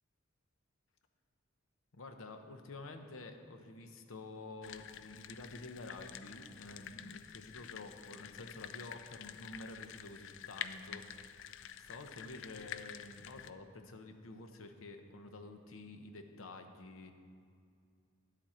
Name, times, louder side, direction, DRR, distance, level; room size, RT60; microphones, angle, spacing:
voice 1, 1.9-11.5 11.8-17.1, left 2 dB, 85° left, 6 dB, 0.8 m, -49 dB
sound 1, 4.6-13.5, left 10 dB, 65° left, 0.4 m, -48 dB
10.5 x 7.4 x 4.4 m, 2.3 s
head